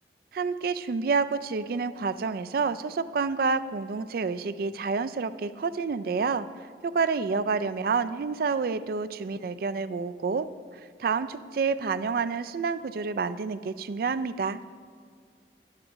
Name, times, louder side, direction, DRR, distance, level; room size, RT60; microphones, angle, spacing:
voice 1, 0.3-6.5 6.8-14.6, right 5 dB, 55° right, 13 dB, 0.3 m, -29 dB
12.0 x 10.5 x 3.1 m, 2.1 s
head